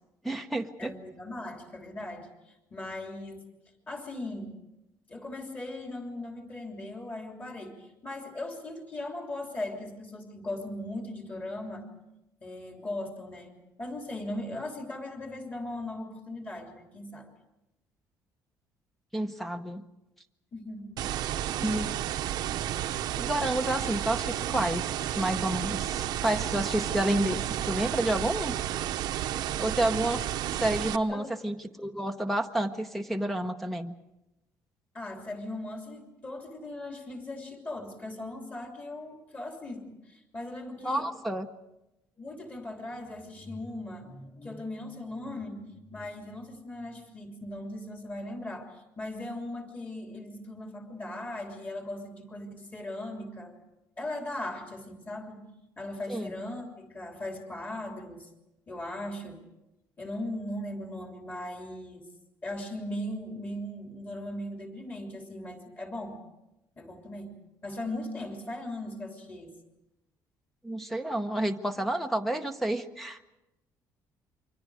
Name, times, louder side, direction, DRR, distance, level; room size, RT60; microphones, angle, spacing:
voice 1, 0.2-0.9 19.1-19.8 21.6-21.9 23.2-24.9 25.1-28.6 29.6-30.2 30.5-33.9 40.8-41.5 56.1-56.3 70.6-73.2, right 1 dB, 5° left, 7 dB, 0.8 m, -30 dB
voice 2, 0.8-3.5 3.9-4.6 5.1-11.9 12.4-17.3 20.5-20.9 31.1-31.3 34.9-41.1 42.2-53.6 54.0-55.5 55.8-58.3 58.7-59.4 60.0-62.1 62.4-66.2 66.8-67.4 67.6-69.5, left 1 dB, 20° left, 2 dB, 3.2 m, -38 dB
sound 1, 21.0-31.0, right 12 dB, 70° right, 0.9 m, -32 dB
28.5 x 24.5 x 4.9 m, 0.94 s
cardioid pair, 160°, 7 cm